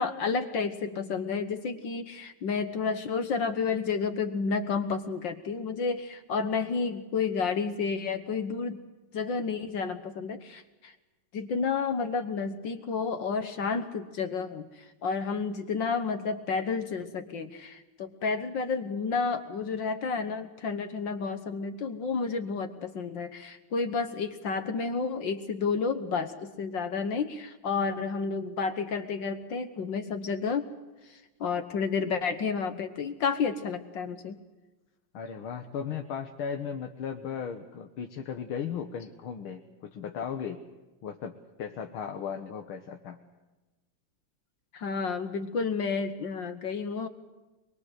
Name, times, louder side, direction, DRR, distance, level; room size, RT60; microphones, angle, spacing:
voice 1, 0.0-8.8 9.1-11.0 11.3-30.6 31.0-34.4 44.7-47.1, left 5 dB, 60° left, 8 dB, 1.8 m, -31 dB
voice 2, 35.1-40.6 41.0-41.3 41.6-43.2, left 7 dB, 75° left, 4 dB, 2.1 m, -36 dB
23.5 x 23.0 x 8.0 m, 1.1 s
omnidirectional pair, 2.3 m